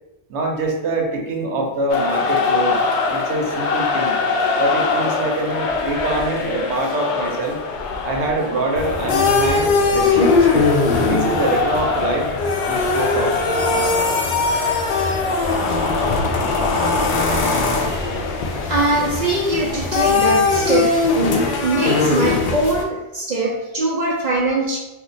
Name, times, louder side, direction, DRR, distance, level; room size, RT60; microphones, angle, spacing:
voice 1, 0.3-4.2 4.6-7.6 8.0-10.5 11.1-12.3 12.7-13.4, right 2 dB, 85° right, 1 dB, 1.0 m, -24 dB
sound 1, 1.9-20.4, left 4 dB, 90° left, 0.9 m, -24 dB
sound 2, 8.8-22.8, left 3 dB, 60° left, 0.6 m, -20 dB
voice 2, 17.7-18.2 18.7-21.1 21.6-24.8, right 2 dB, 50° right, -1 dB, 0.5 m, -22 dB
2.9 x 2.4 x 4.0 m, 0.99 s
omnidirectional pair, 1.1 m